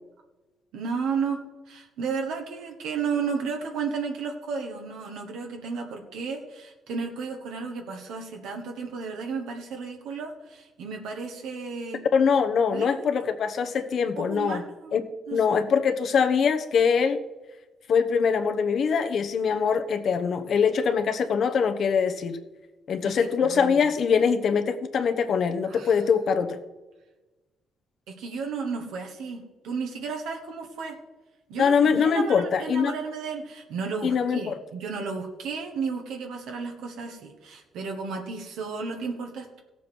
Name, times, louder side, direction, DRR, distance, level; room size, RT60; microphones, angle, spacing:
voice 1, 0.7-12.0 12.7-13.1 14.2-14.9 15.3-15.6 23.0-23.8 25.6-26.0 28.1-31.0 31.5-39.6, right 5 dB, 85° right, 2 dB, 1.4 m, -33 dB
voice 2, 12.1-14.6 14.9-17.2 17.9-22.4 22.9-26.6 31.6-32.9 34.0-34.6, left 6 dB, 60° left, 7 dB, 1.0 m, -23 dB
16.0 x 7.1 x 4.6 m, 1.2 s
cardioid pair, 90°, 0 cm